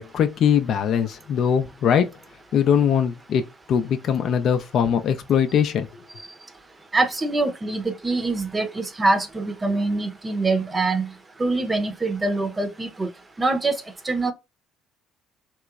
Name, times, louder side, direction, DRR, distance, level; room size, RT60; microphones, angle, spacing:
voice 1, 0.0-2.1 2.5-3.4 3.7-5.9, left 8 dB, 60° left, 0.4 m, -21 dB
voice 2, 6.9-11.1 11.4-13.1 13.4-13.7 14.0-14.3, right 2 dB, 25° right, 0.7 m, -24 dB
3.0 x 3.0 x 2.4 m
supercardioid pair, 75°, 0 cm